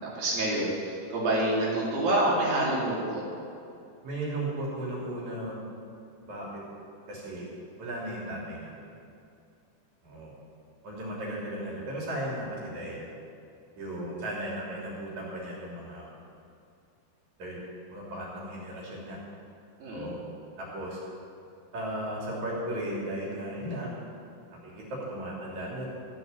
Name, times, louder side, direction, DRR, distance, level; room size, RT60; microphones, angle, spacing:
voice 1, 0.2-3.2 19.8-20.1, right 1 dB, 85° right, -5 dB, 4.6 m, -27 dB
voice 2, 4.0-5.6 6.2-6.6 7.1-7.5 7.8-8.9 10.0-10.3 10.8-13.1 13.8-16.1 17.4-17.6 17.9-19.2 19.9-20.2 20.6-21.0 21.7-23.9 24.6-25.9, right 1 dB, 55° right, -5 dB, 4.3 m, -36 dB
13.5 x 7.9 x 7.3 m, 2.5 s
omnidirectional pair, 4.0 m